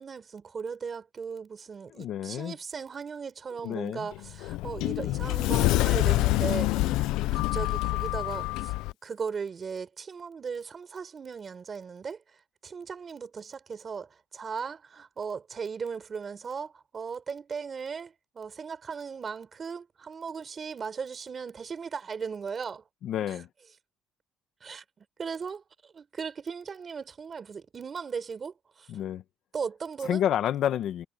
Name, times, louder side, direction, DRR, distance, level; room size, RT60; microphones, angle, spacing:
voice 1, 0.0-7.0 7.3-8.8 9.0-12.2 12.6-22.8 23.3-23.4 24.6-28.9 29.5-30.2, right 6 dB, 30° right, 4.5 m, -37 dB
voice 2, 1.9-2.5 3.6-4.1 6.7-7.0 23.0-23.5 28.9-29.2 30.0-31.1, left 10 dB, 55° left, 1.6 m, -30 dB
Sliding door, 4.1-8.9, left 19 dB, 90° left, 0.5 m, -26 dB
cardioid pair, 145°, 0 cm